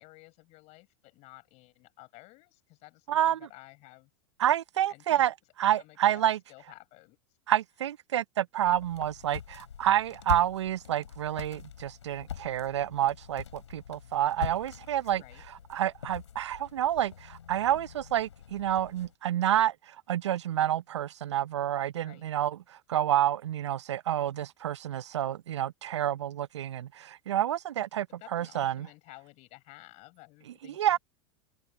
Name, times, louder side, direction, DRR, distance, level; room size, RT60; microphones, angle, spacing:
voice 1, 0.0-4.1 4.9-5.3 5.8-7.2 15.1-15.4 22.0-22.3 28.2-31.0, left 22 dB, 50° left, 6.0 m, -53 dB
voice 2, 3.1-3.4 4.4-6.4 7.5-15.2 15.7-28.1 28.3-28.9 30.8-31.0, right 11 dB, 75° right, 0.7 m, -29 dB
sound 1, 8.6-19.1, left 8 dB, 80° left, 3.8 m, -43 dB
open air
hypercardioid pair, 95°, 15 cm